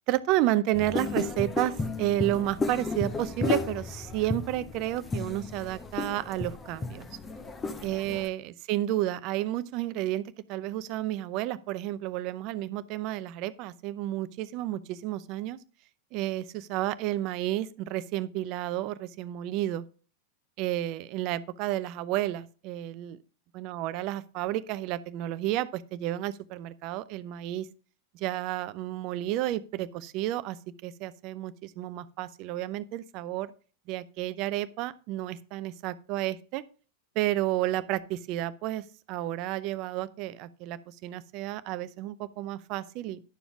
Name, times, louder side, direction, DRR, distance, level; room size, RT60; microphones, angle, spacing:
voice 1, 0.1-7.1 7.8-10.2 10.5-15.6 16.1-19.8 20.6-23.2 23.5-27.7 28.1-30.6 30.8-33.5 33.9-36.6 37.2-43.2, right 14 dB, 40° right, 0.6 m, -31 dB
sound 1, 0.7-8.3, left 3 dB, 15° left, 1.0 m, -33 dB
11.5 x 7.0 x 3.6 m
figure-of-eight pair, 90°, 0 cm